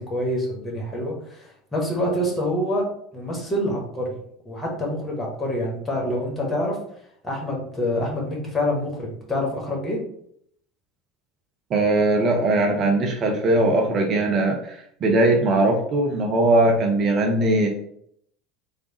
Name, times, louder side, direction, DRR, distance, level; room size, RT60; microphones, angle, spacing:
voice 1, 0.0-2.8 3.1-4.1 4.4-6.8 7.2-10.0, left 1 dB, 20° left, -2 dB, 1.4 m, -26 dB
voice 2, 11.7-17.7, right 2 dB, 40° right, 2 dB, 0.6 m, -20 dB
3.4 x 2.4 x 3.0 m, 0.68 s
figure-of-eight pair, 70°, 0 cm